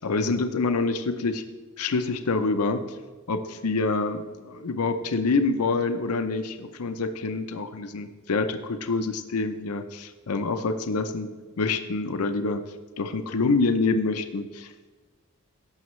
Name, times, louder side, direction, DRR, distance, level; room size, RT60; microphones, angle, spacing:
voice 1, 0.0-1.4 1.8-2.8 3.3-11.3 11.6-12.6 13.0-14.7, left 3 dB, 80° left, 9 dB, 0.6 m, -26 dB
15.5 x 6.3 x 3.1 m, 1.3 s
head